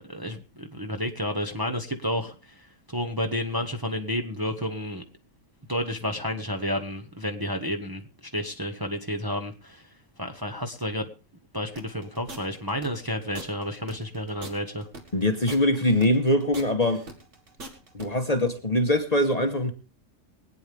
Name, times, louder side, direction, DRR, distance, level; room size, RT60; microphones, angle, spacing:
voice 1, 0.0-5.0 5.7-8.0 8.3-9.8 10.2-11.1 11.5-14.9, equal, 15° right, 1.2 m, -31 dB
sound 1, 11.8-18.1, right 2 dB, 60° right, 2.3 m, -42 dB
voice 2, 15.1-17.0 17.9-19.7, left 1 dB, 30° left, 1.3 m, -23 dB
23.5 x 9.3 x 3.4 m
omnidirectional pair, 1.4 m